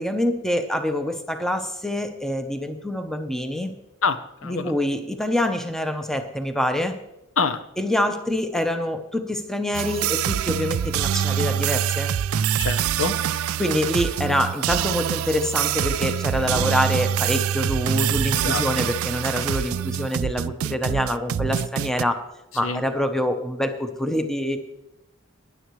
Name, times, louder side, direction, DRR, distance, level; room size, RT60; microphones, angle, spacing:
voice 1, 0.0-3.7 4.4-7.0 7.8-12.1 13.6-22.2 22.5-24.6, left 1 dB, ahead, 6 dB, 0.8 m, -25 dB
voice 2, 4.0-4.7 7.4-7.6 12.6-13.2 16.4-16.7 18.3-18.6 22.6-22.8, left 4 dB, 75° left, 10 dB, 0.8 m, -26 dB
sound 1, 9.7-22.0, right 9 dB, 90° right, 0.4 m, -25 dB
18.5 x 10.5 x 3.2 m, 0.89 s
head